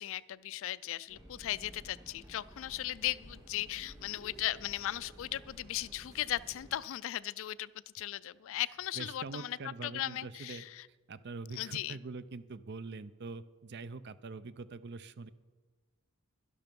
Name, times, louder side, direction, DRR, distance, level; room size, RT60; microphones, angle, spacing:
voice 1, 0.0-7.7 7.9-9.6 9.8-10.8 11.6-12.0, left 13 dB, 65° left, 19 dB, 0.3 m, -37 dB
sound 1, 1.1-6.8, right 1 dB, 15° right, 2.3 m, -54 dB
voice 2, 8.9-10.6 11.1-15.3, right 4 dB, 55° right, 14 dB, 0.6 m, -44 dB
12.0 x 11.5 x 5.3 m, 1.3 s
head